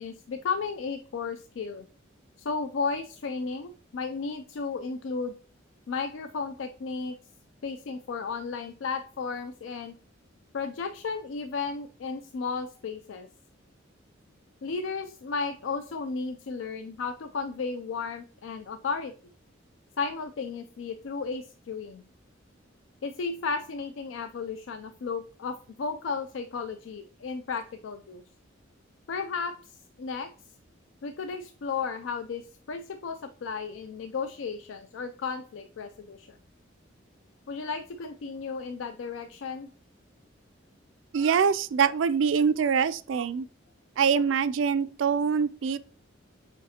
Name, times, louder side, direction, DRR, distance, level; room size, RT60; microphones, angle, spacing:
voice 1, 0.0-1.9 2.4-5.3 5.9-7.2 7.6-10.0 10.5-13.3 14.6-19.1 20.0-22.0 23.0-28.2 29.1-30.3 31.0-36.4 37.5-39.7, left 5 dB, 75° left, 0.4 m, -34 dB
voice 2, 41.1-43.5 44.0-45.8, right 6 dB, 75° right, 0.4 m, -24 dB
7.1 x 5.0 x 2.8 m
head